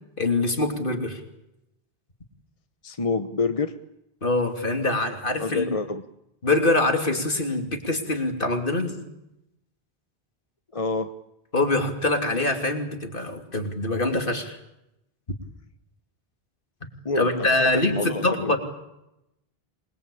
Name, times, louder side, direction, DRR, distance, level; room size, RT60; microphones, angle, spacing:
voice 1, 0.2-1.2 4.2-5.7 6.4-9.0 11.5-14.6 17.2-18.6, left 2 dB, 60° left, 4 dB, 3.4 m, -24 dB
voice 2, 2.8-3.7 5.4-6.0 10.7-11.1 17.0-18.5, left 3 dB, 35° left, 8 dB, 1.1 m, -27 dB
27.0 x 21.5 x 8.7 m, 0.88 s
omnidirectional pair, 1.0 m